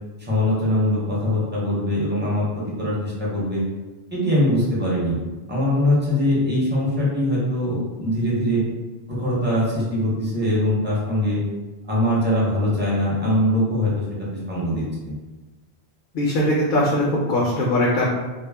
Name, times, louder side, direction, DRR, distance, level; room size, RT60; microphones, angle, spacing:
voice 1, 0.2-2.4 2.8-3.6 4.1-5.2 5.5-8.6 9.1-11.4 11.9-14.0 14.5-15.1, left 1 dB, 10° right, -7 dB, 0.6 m, -22 dB
voice 2, 16.1-18.1, left 1 dB, 60° left, -5 dB, 0.7 m, -20 dB
2.2 x 2.0 x 3.3 m, 1.2 s
omnidirectional pair, 1.1 m